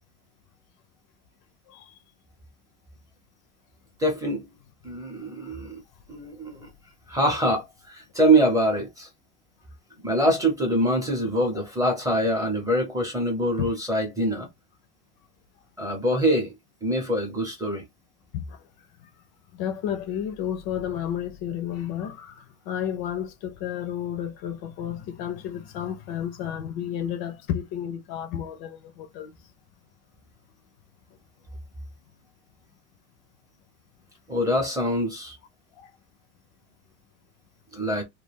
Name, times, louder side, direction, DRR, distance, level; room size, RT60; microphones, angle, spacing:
voice 1, 4.0-4.5 4.8-5.8 6.1-6.7 7.1-9.1 10.0-14.5 15.8-16.5 16.8-17.8 34.3-35.4 37.7-38.0, right 1 dB, 5° right, 0.6 m, -24 dB
voice 2, 18.3-18.6 19.0-19.1 19.5-29.5 35.7-35.9, left 9 dB, 50° left, 0.5 m, -32 dB
2.3 x 2.3 x 3.3 m
cardioid pair, 150°, 49 cm